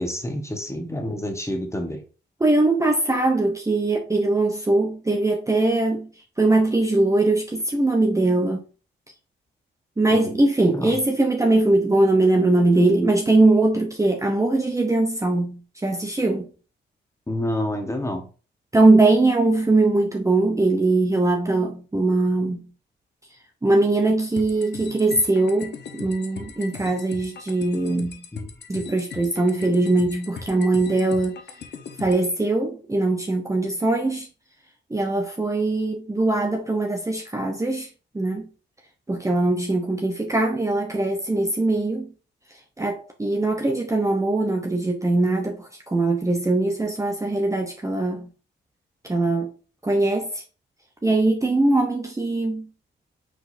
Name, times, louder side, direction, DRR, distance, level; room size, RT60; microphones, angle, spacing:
voice 1, 0.0-2.0 10.1-10.4 10.7-11.0 17.3-18.3 28.3-28.5, left 1 dB, 15° left, 1.2 m, -28 dB
voice 2, 2.4-6.1 6.4-8.6 10.0-16.5 18.7-22.7 23.6-28.2 28.7-31.4 32.0-34.3 34.9-37.9 38.1-38.5 39.1-42.1 42.8-48.3 49.0-49.5 49.8-50.4 51.0-52.7, right 2 dB, 15° right, 0.7 m, -21 dB
sound 1, 24.4-32.3, left 6 dB, 60° left, 0.9 m, -39 dB
4.8 x 3.9 x 2.6 m
cardioid pair, 75°, 20 cm